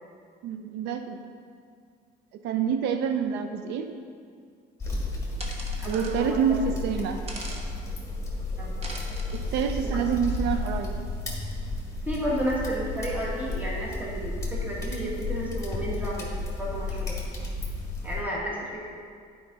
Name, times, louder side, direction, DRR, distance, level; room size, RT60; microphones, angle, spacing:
voice 1, 0.4-1.2 2.4-3.9 5.9-7.2 9.3-10.9, right 7 dB, 85° right, 7 dB, 0.5 m, -27 dB
sound 1, 4.8-18.2, left 2 dB, 15° left, 1.8 m, -32 dB
sound 2, 5.4-6.2 7.3-7.7 8.8-9.4, right 2 dB, 35° right, 1.1 m, -40 dB
voice 2, 5.8-6.7 7.0-7.1 8.6-8.8 9.9-10.0 12.1-16.3 16.6-17.2 18.0-18.8, equal, 10° right, -5 dB, 1.7 m, -32 dB
10.0 x 5.0 x 4.1 m, 2.2 s
cardioid pair, 110°, 17 cm